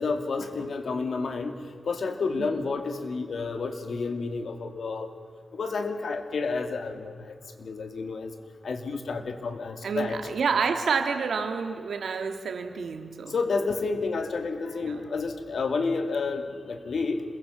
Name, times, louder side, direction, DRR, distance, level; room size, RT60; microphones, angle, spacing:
voice 1, 0.0-5.1 5.5-8.3 8.6-10.2 13.3-17.2, left 4 dB, 75° left, 7 dB, 2.4 m, -30 dB
voice 2, 9.8-13.3 14.9-15.0, right 5 dB, 90° right, 6 dB, 2.1 m, -29 dB
27.5 x 22.0 x 7.0 m, 2.2 s
wide cardioid pair, 90°, 0 cm